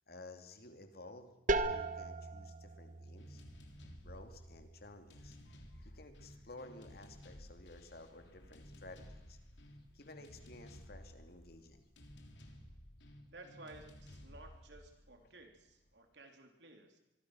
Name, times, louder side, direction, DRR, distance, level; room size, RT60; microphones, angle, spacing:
voice 1, 0.1-3.4 4.0-9.4 9.9-11.9, left 2 dB, 60° left, 6 dB, 2.8 m, -54 dB
sound 1, 1.5-7.0, right 2 dB, 45° right, 1.3 m, -40 dB
sound 2, 3.2-15.9, equal, 85° left, 3.3 m, -56 dB
voice 2, 13.3-17.0, right 2 dB, 70° right, 4 dB, 3.5 m, -56 dB
25.0 x 23.5 x 6.4 m, 0.95 s
head